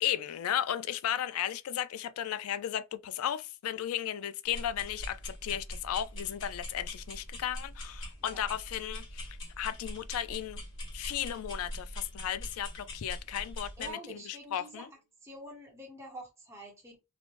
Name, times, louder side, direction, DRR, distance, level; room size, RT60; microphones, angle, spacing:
voice 1, 0.0-9.3 9.6-10.6 10.9-14.9, left 10 dB, 90° left, 0.3 m, -35 dB
sound 1, 4.5-13.9, left 1 dB, 60° left, 1.5 m, -43 dB
voice 2, 8.2-8.5 13.8-14.9 15.2-17.0, right 1 dB, 15° right, 0.8 m, -46 dB
3.0 x 2.0 x 2.9 m
head